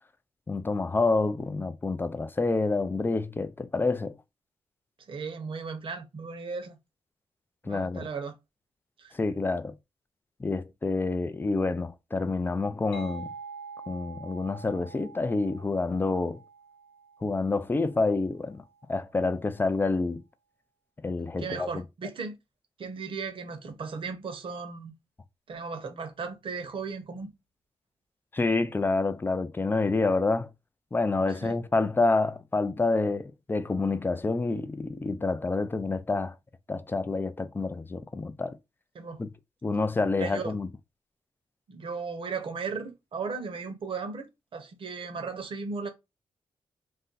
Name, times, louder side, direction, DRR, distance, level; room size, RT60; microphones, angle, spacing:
voice 1, 0.5-4.1 7.6-8.0 9.1-9.7 10.4-13.3 13.9-16.4 17.2-18.6 18.9-20.2 21.0-21.8 28.3-30.5 30.9-36.3 36.7-38.6 39.2-39.3 39.6-40.7, left 3 dB, 20° left, 0.4 m, -28 dB
voice 2, 5.1-6.8 7.6-8.4 9.0-9.1 21.4-22.4 22.8-24.9 25.5-27.3 31.4-31.5 38.9-39.2 40.2-40.5 41.7-45.9, right 5 dB, 60° right, 0.8 m, -36 dB
sound 1, 12.9-18.4, right 4 dB, 85° left, 0.5 m, -46 dB
2.6 x 2.1 x 3.9 m
cardioid pair, 90°, 10 cm